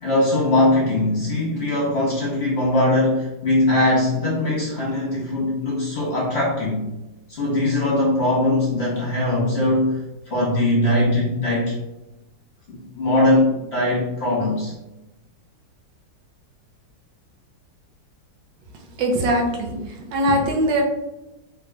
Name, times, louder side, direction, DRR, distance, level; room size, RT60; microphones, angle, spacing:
voice 1, 0.0-6.9 7.3-11.8 12.7-14.7, left 1 dB, 40° left, -6 dB, 1.1 m, -21 dB
voice 2, 19.0-20.8, right 1 dB, 85° right, 1 dB, 1.4 m, -21 dB
3.7 x 3.1 x 2.3 m, 0.95 s
omnidirectional pair, 2.0 m